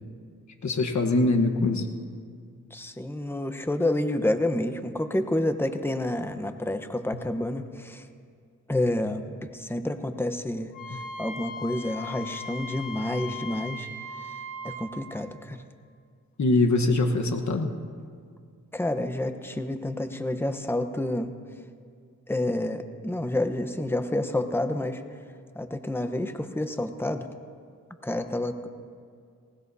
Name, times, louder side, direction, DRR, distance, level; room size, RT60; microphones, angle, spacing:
voice 1, 0.6-1.9 16.4-17.7, left 2 dB, 60° left, 3 dB, 1.3 m, -23 dB
voice 2, 2.7-8.1 8.7-13.9 14.2-14.4 14.6-15.6 18.7-21.3 22.3-25.0 25.5-27.3 28.0-28.7, left 1 dB, 5° left, 8 dB, 0.9 m, -29 dB
Wind instrument woodwind instrument, 10.7-14.8, left 2 dB, 80° left, 2.6 m, -38 dB
19.5 x 19.0 x 2.8 m, 2.2 s
cardioid pair, 60°, 32 cm